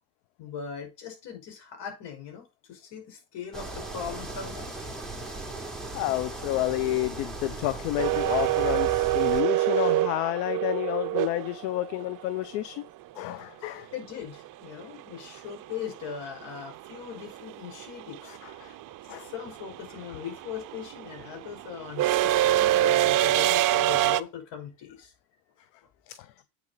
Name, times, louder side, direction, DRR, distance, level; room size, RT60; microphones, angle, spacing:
voice 1, 0.4-4.7 13.9-18.4 18.6-18.8 19.2-25.1, left 8 dB, 55° left, 5.4 m, -40 dB
sound 1, 3.5-9.4, right 2 dB, ahead, 3.2 m, -37 dB
voice 2, 5.9-12.8 13.2-13.9 18.3-18.7 19.1-19.3 26.2-26.3, left 16 dB, 75° left, 0.9 m, -30 dB
sound 2, 8.0-12.0 14.5-14.6 15.8-16.2 16.4-24.2, right 15 dB, 40° right, 0.7 m, -25 dB
8.5 x 6.7 x 4.0 m
supercardioid pair, 100°, 49 cm